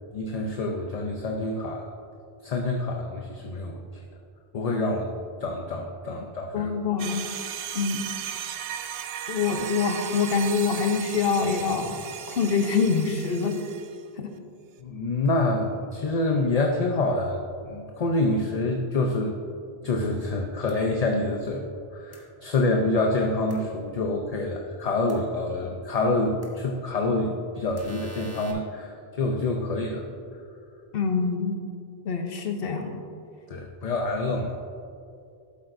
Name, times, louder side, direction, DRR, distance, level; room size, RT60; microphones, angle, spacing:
voice 1, 0.1-1.9 2.4-4.0 4.5-5.1 5.4-6.7 14.8-19.4 19.8-21.7 21.9-30.0 30.3-30.4 33.5-34.6, left 2 dB, 45° left, 1 dB, 0.6 m, -27 dB
voice 2, 6.5-7.2 7.7-8.1 9.3-12.0 12.3-13.6 14.2-14.3 30.9-31.6 32.0-33.0, left 5 dB, 65° left, 5 dB, 1.0 m, -25 dB
sound 1, 7.0-14.0, right 9 dB, 75° right, 0.8 m, -36 dB
sound 2, 20.7-20.8 22.1-22.2 23.5-23.6 25.1-25.2 26.4-26.5 27.8-28.5, equal, 15° left, 1.1 m, -45 dB
12.5 x 7.9 x 2.6 m, 2.5 s
omnidirectional pair, 1.1 m